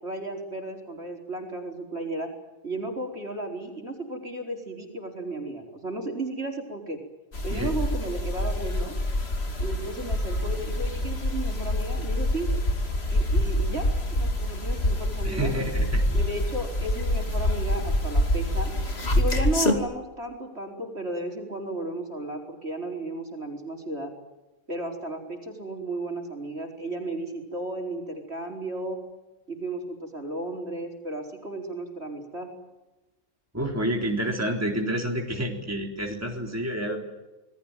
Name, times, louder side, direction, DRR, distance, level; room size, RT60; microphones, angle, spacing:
voice 1, 0.0-2.3 2.6-7.0 7.4-8.9 9.6-12.5 13.1-15.5 16.1-18.7 19.1-24.1 24.7-29.0 29.5-32.5, right 2 dB, 45° right, 2 dB, 5.0 m, -34 dB
sound 1, 7.3-19.7, left 1 dB, 45° left, 2.9 m, -26 dB
voice 2, 15.2-16.0 33.5-37.0, right 1 dB, 10° right, 1 dB, 3.8 m, -29 dB
27.5 x 20.5 x 9.1 m, 1.0 s
omnidirectional pair, 1.5 m